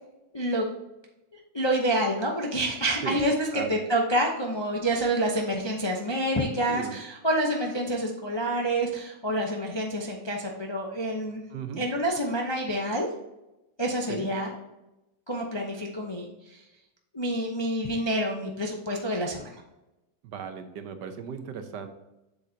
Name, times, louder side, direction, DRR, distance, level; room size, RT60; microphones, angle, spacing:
voice 1, 0.3-0.7 1.5-11.4 11.8-13.1 13.8-14.6 15.3-16.6 17.1-19.6, right 1 dB, 25° left, 0 dB, 0.6 m, -28 dB
voice 2, 6.7-7.0 11.5-11.8 14.1-14.3 20.2-21.9, right 6 dB, 70° right, 8 dB, 1.4 m, -36 dB
8.2 x 7.3 x 2.8 m, 0.94 s
omnidirectional pair, 2.0 m